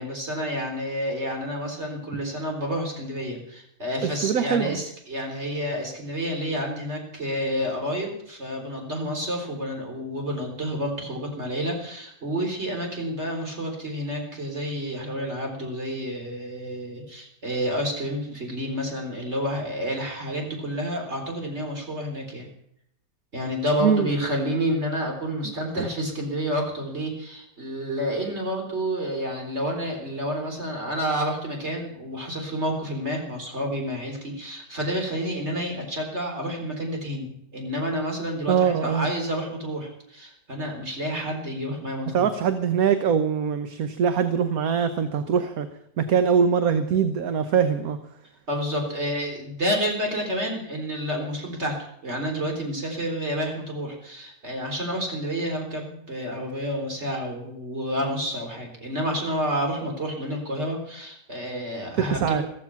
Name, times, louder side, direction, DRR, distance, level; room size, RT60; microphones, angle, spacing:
voice 1, 0.0-22.5 23.3-42.3 48.5-51.8 52.0-62.4, equal, 40° right, 2 dB, 4.1 m, -29 dB
voice 2, 4.0-4.8 23.8-24.1 25.7-25.9 38.5-39.1 42.1-45.7 46.0-48.0 62.0-62.4, right 7 dB, 60° right, 9 dB, 1.3 m, -23 dB
14.5 x 14.5 x 5.9 m, 0.73 s
omnidirectional pair, 1.8 m